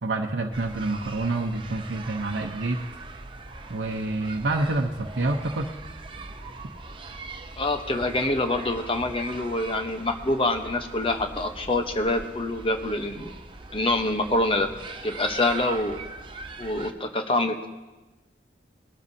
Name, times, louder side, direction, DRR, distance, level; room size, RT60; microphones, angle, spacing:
voice 1, 0.0-2.8 3.7-5.7, right 2 dB, 85° right, 1 dB, 0.8 m, -27 dB
school break noise outdoor, 0.5-16.9, right 3 dB, 30° right, 0.7 m, -41 dB
voice 2, 7.6-13.3 13.7-14.7 15.0-16.0 16.6-17.7, left 2 dB, 30° left, 6 dB, 0.9 m, -26 dB
21.5 x 12.5 x 2.8 m, 1.2 s
head